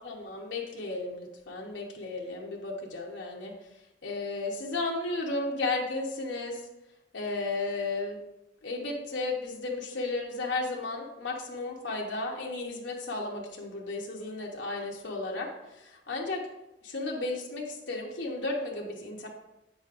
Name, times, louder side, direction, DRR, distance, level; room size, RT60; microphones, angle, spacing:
voice 1, 0.0-3.5 4.0-6.6 7.1-8.2 8.6-15.5 15.8-16.4 16.8-19.3, left 2 dB, 75° left, -1 dB, 0.9 m, -34 dB
7.3 x 6.2 x 2.5 m, 0.96 s
head